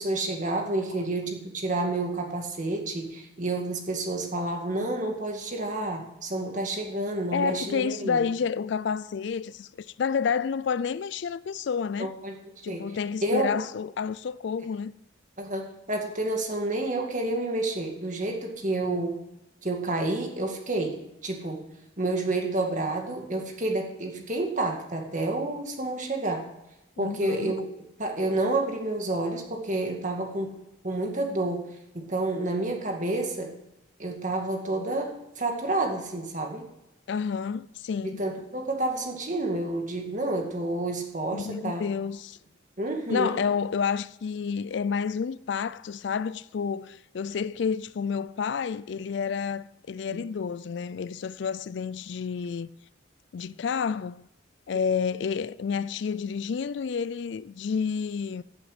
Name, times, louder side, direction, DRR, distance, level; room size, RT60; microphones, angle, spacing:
voice 1, 0.0-8.2 12.0-12.9 13.2-13.6 15.4-19.2 19.6-21.7 22.0-26.4 27.0-27.7 28.0-30.5 30.8-31.7 31.9-33.5 34.0-36.7 38.0-41.8 42.8-43.4 50.1-50.2, right 2 dB, 40° right, 2.1 m, -29 dB
voice 2, 7.3-12.1 12.6-14.9 27.0-27.5 37.1-38.2 41.3-42.4 43.1-52.7 53.3-54.3 54.7-58.4, left 6 dB, 60° left, 0.4 m, -30 dB
15.0 x 7.9 x 5.0 m
head